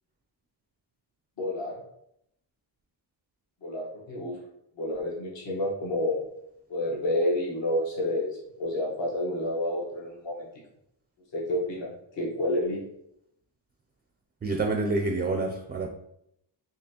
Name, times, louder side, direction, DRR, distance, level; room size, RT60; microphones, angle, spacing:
voice 1, 1.4-1.8 3.6-4.4 4.8-6.2 6.7-10.5 11.3-11.9 12.2-12.8, left 1 dB, 65° left, -5 dB, 1.3 m, -29 dB
voice 2, 14.4-15.9, right 3 dB, 25° right, 4 dB, 0.3 m, -27 dB
4.2 x 2.9 x 2.8 m, 0.76 s
cardioid pair, 90°, 47 cm